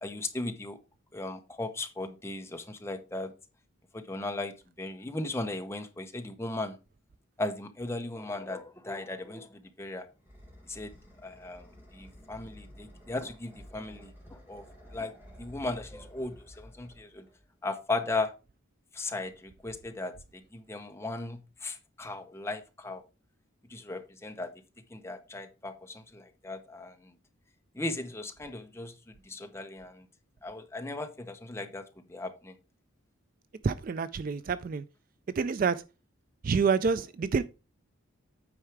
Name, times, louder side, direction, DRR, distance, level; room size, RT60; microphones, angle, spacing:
voice 1, 0.0-0.8 1.1-3.3 3.9-6.7 7.4-10.1 10.7-10.9 11.2-11.6 11.9-14.6 14.9-15.1 15.4-17.3 17.6-18.3 18.9-23.0 23.7-24.5 24.9-27.1 27.7-30.1 30.4-31.8 32.1-32.5, left 2 dB, 10° left, 0.8 m, -37 dB
sound 1, 9.6-17.6, equal, 10° right, 3.1 m, -52 dB
voice 2, 33.6-34.8 35.4-35.8 36.4-37.4, right 5 dB, 40° right, 0.3 m, -27 dB
8.8 x 4.7 x 4.7 m
head